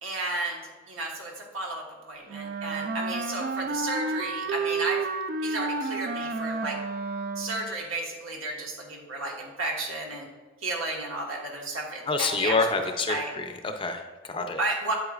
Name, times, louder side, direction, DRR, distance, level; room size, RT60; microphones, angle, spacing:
voice 1, 0.0-5.1 5.4-6.8 7.3-10.3 10.6-13.3 14.4-14.9, right 2 dB, 85° right, -1 dB, 1.6 m, -33 dB
Wind instrument woodwind instrument, 2.3-7.8, right 3 dB, 45° right, 0.4 m, -31 dB
voice 2, 12.1-14.6, left 3 dB, 25° left, 5 dB, 0.5 m, -28 dB
8.3 x 8.0 x 2.5 m, 1.4 s
head